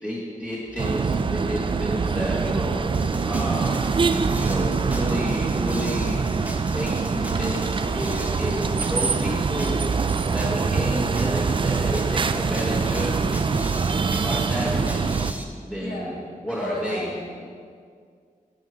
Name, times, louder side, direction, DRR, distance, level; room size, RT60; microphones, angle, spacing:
voice 1, 0.0-3.8 4.4-6.3 6.7-7.6 7.9-9.8 10.3-13.3 14.2-15.2 15.6-16.2 16.4-17.1, equal, 10° left, -6 dB, 1.4 m, -31 dB
sound 1, 0.7-15.3, right 1 dB, 65° right, 2.3 m, -43 dB
sound 2, 0.8-15.3, right 5 dB, 35° right, 0.3 m, -24 dB
sound 3, 2.9-15.4, right 1 dB, 10° right, 0.8 m, -36 dB
voice 2, 15.8-17.5, left 2 dB, 80° left, -3 dB, 1.8 m, -35 dB
11.0 x 4.6 x 4.9 m, 2.1 s
wide cardioid pair, 85°, 15 cm